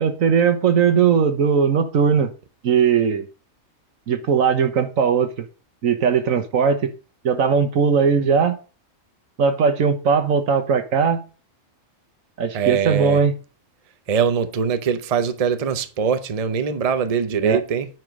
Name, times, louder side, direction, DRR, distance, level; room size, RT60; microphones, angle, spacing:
voice 1, 0.0-2.3 2.6-3.3 4.1-5.3 5.8-6.9 7.2-8.6 9.4-11.2 12.4-13.3 17.4-17.6, right 6 dB, 80° right, 1.5 m, -19 dB
voice 2, 12.5-13.2 14.1-17.9, right 6 dB, 35° right, 0.7 m, -22 dB
9.3 x 4.6 x 5.2 m
omnidirectional pair, 1.4 m